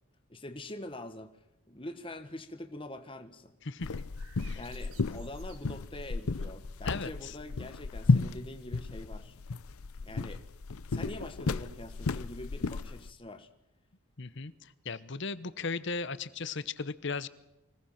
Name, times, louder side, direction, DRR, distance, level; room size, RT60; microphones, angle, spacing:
voice 1, 0.3-1.3 1.7-3.5 4.5-9.3 10.0-10.4 10.9-13.5, left 1 dB, 25° left, 8 dB, 1.5 m, -44 dB
voice 2, 3.6-4.0 4.4-4.6 6.8-7.3 14.2-17.3, left 4 dB, 55° left, 15 dB, 0.9 m, -37 dB
sound 1, 3.8-13.1, left 3 dB, 80° left, 0.7 m, -33 dB
sound 2, 3.9-6.6, right 6 dB, 80° right, 4.3 m, -58 dB
25.5 x 17.5 x 5.9 m, 0.95 s
head